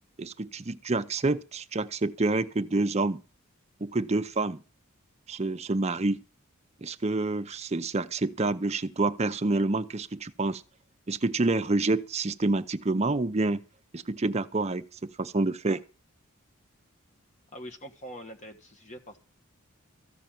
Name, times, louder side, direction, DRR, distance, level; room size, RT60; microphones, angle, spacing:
voice 1, 0.2-3.2 3.8-4.6 5.3-6.2 6.8-10.6 11.1-13.6 13.9-15.8, right 2 dB, 30° right, 0.6 m, -28 dB
voice 2, 17.5-19.2, equal, 35° left, 1.5 m, -43 dB
14.5 x 5.6 x 9.1 m
head